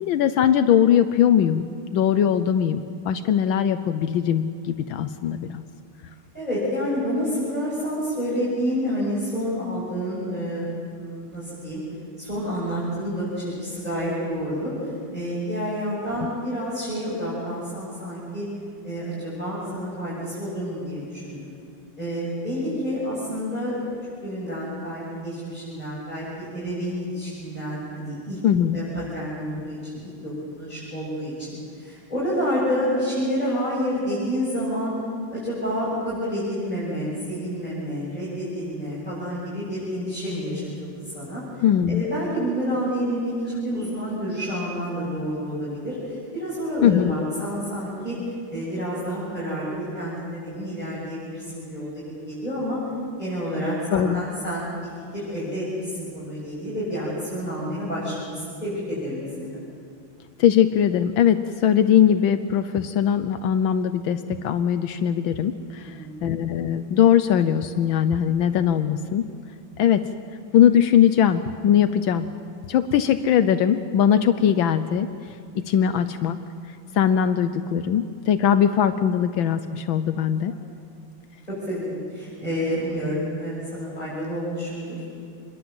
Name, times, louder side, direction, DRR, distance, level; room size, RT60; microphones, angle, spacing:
voice 1, 0.0-1.7 1.9-5.6 28.4-28.8 41.6-42.1 46.8-47.1 53.9-54.2 60.4-69.2 69.8-70.0 70.5-72.3 72.7-75.4 75.7-76.4 76.7-80.5, left 9 dB, 80° left, 10 dB, 1.5 m, -20 dB
voice 2, 6.3-11.8 12.2-18.5 18.8-21.5 22.0-23.8 24.2-28.4 28.7-35.0 35.3-52.8 53.2-54.7 55.1-59.6 65.8-66.3 80.5-80.6 81.5-85.0, equal, 20° left, -9 dB, 7.5 m, -29 dB
26.5 x 22.0 x 7.9 m, 2.4 s
omnidirectional pair, 2.2 m